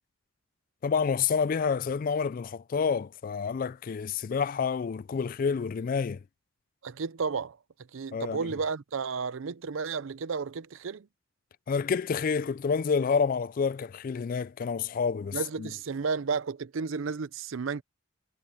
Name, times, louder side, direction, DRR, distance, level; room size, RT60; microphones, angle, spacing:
voice 1, 0.8-6.2 8.1-8.5 11.7-15.7, left 5 dB, 40° left, 0.3 m, -28 dB
voice 2, 6.8-7.6 7.9-11.1 15.3-17.8, right 5 dB, 70° right, 0.5 m, -32 dB
head